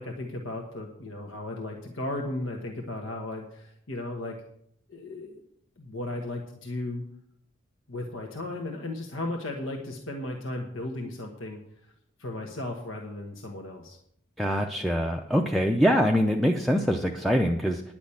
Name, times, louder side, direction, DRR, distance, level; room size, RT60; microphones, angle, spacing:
voice 1, 0.0-4.4 4.9-5.4 5.8-7.0 7.9-11.6 12.2-14.0, left 2 dB, 75° left, 2 dB, 1.4 m, -35 dB
voice 2, 14.4-17.8, equal, ahead, 2 dB, 0.5 m, -24 dB
10.0 x 6.2 x 8.6 m, 0.72 s
head